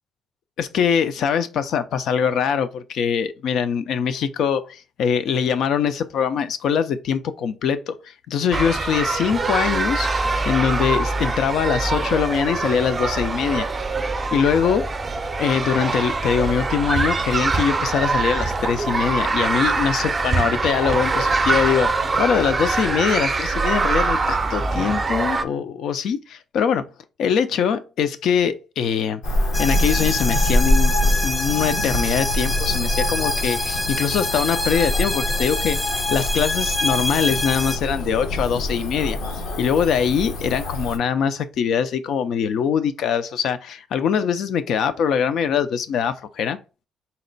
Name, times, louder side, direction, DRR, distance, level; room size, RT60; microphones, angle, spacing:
voice 1, 0.6-13.7 14.3-14.9 15.4-26.9 27.2-29.2 29.6-30.9 31.2-35.8 36.1-39.2 39.6-46.6, left 7 dB, 75° left, 0.4 m, -22 dB
sound 1, 8.5-25.4, right 3 dB, 30° right, 0.5 m, -23 dB
Cricket / Motor vehicle (road), 29.2-41.0, left 1 dB, 90° left, 1.0 m, -25 dB
sound 2, 29.5-37.8, left 2 dB, 15° left, 0.5 m, -26 dB
4.0 x 2.1 x 3.9 m
cardioid pair, 90°, 0 cm